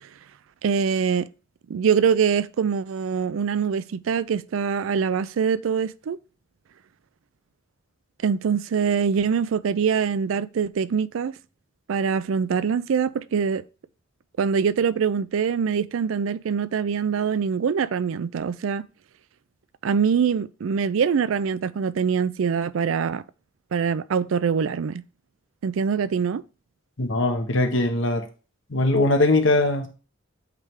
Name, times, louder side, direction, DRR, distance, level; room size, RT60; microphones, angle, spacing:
voice 1, 0.6-1.3 1.7-6.2 8.2-11.3 11.9-13.6 14.4-18.8 19.8-23.2 23.7-25.0 25.6-26.4, right 6 dB, 80° right, 0.4 m, -24 dB
voice 2, 27.0-28.2 28.7-29.9, left 2 dB, 65° left, 1.1 m, -21 dB
8.4 x 3.3 x 3.6 m
head